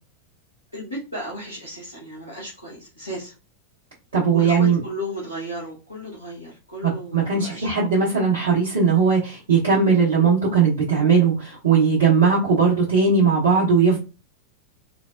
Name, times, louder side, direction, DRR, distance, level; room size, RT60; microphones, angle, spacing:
voice 1, 0.7-3.3 4.3-7.9, equal, 85° left, -5 dB, 1.1 m, -35 dB
voice 2, 4.1-4.8 6.8-14.0, right 5 dB, 65° right, -6 dB, 1.0 m, -19 dB
3.8 x 2.0 x 2.4 m, 0.31 s
figure-of-eight pair, 90°, 0 cm